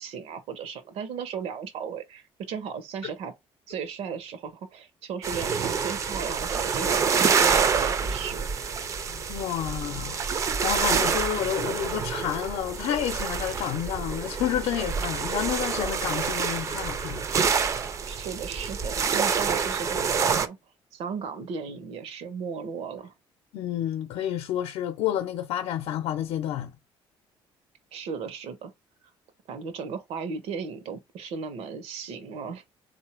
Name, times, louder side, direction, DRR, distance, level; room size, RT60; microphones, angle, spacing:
voice 1, 0.0-3.3 3.7-8.7 18.1-20.6 20.9-23.1 27.9-28.7 29.5-32.6, right 6 dB, 80° right, 1.1 m, -36 dB
sound 1, 5.2-20.5, right 6 dB, 30° right, 0.4 m, -27 dB
voice 2, 9.0-10.3 10.6-17.2 23.5-26.7, left 11 dB, 80° left, 0.6 m, -30 dB
4.1 x 2.7 x 4.4 m
cardioid pair, 180°, 10 cm